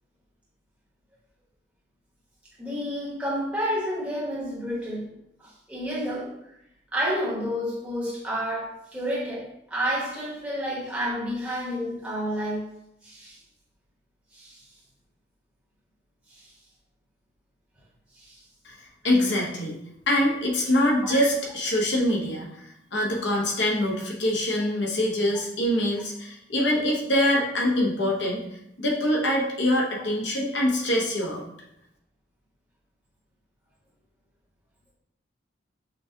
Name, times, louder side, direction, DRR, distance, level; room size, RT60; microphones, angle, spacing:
voice 1, 2.6-5.1 5.4-6.3 6.9-12.7 13.0-13.4 14.3-14.6 16.3-16.5 18.1-18.4 21.0-21.2, equal, 5° right, -7 dB, 1.1 m, -30 dB
voice 2, 19.0-19.8 20.1-22.5 22.9-28.4 28.8-31.4, left 1 dB, 70° left, -2 dB, 0.9 m, -24 dB
5.9 x 2.3 x 2.7 m, 0.79 s
head